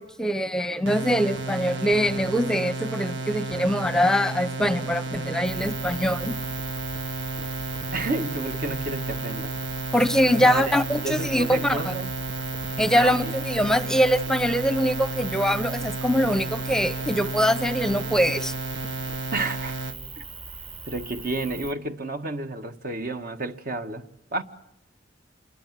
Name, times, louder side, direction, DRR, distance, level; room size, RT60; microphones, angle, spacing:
voice 1, 0.0-6.3 9.9-11.9 12.8-18.5, equal, 5° left, 0.9 m, -23 dB
sound 1, 0.9-20.0, right 3 dB, 80° right, 1.9 m, -33 dB
sound 2, 5.4-21.7, right 4 dB, 30° right, 1.6 m, -39 dB
voice 2, 7.9-9.5 10.4-10.8 11.0-12.1 12.9-13.3 19.3-19.8 20.2-20.3 20.9-24.0 24.3-24.4, right 2 dB, 55° right, 1.6 m, -30 dB
27.5 x 22.0 x 7.6 m
head